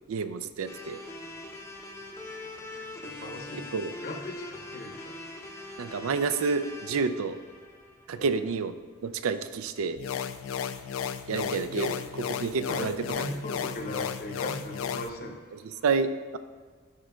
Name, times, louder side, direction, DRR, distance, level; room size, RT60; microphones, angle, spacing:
voice 1, 0.1-1.0 3.7-3.9 5.8-7.4 8.1-8.7 9.0-10.0 11.3-12.0 12.4-12.9 15.8-16.4, right 5 dB, 80° right, 11 dB, 0.4 m, -29 dB
sound 1, 0.7-8.8, left 2 dB, 10° left, 0.5 m, -43 dB
voice 2, 2.0-3.7 4.0-6.1 8.1-8.3 11.7-11.9 12.7-15.8, left 1 dB, 45° left, 1 dB, 0.7 m, -39 dB
sound 2, 10.0-15.1, left 8 dB, 70° left, 0.3 m, -34 dB
12.0 x 4.9 x 2.3 m, 1.5 s
head